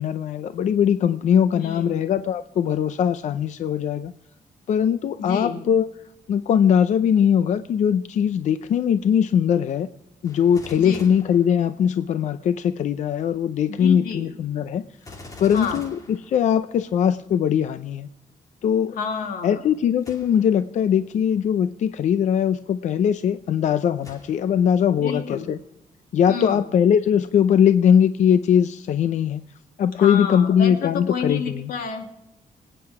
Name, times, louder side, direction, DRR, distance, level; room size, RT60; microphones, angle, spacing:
voice 1, 0.0-4.1 4.7-5.9 6.3-9.9 10.2-14.8 15.4-18.1 18.6-19.0 19.4-25.6 26.1-29.4 29.8-31.7, left 8 dB, 55° left, 12 dB, 0.6 m, -20 dB
voice 2, 1.5-2.1 5.2-5.6 10.8-11.1 13.7-14.3 15.5-15.8 19.0-19.7 25.0-25.5 26.3-26.6 29.9-32.1, left 5 dB, 90° left, 4 dB, 2.5 m, -29 dB
Gunshot gunfire, 10.2-12.2 15.0-17.1 20.0-20.6 21.3-21.4 24.0-24.8 25.3-25.4, left 2 dB, 25° left, 2.4 m, -45 dB
25.0 x 9.2 x 4.8 m, 0.90 s
cardioid pair, 160°, 14 cm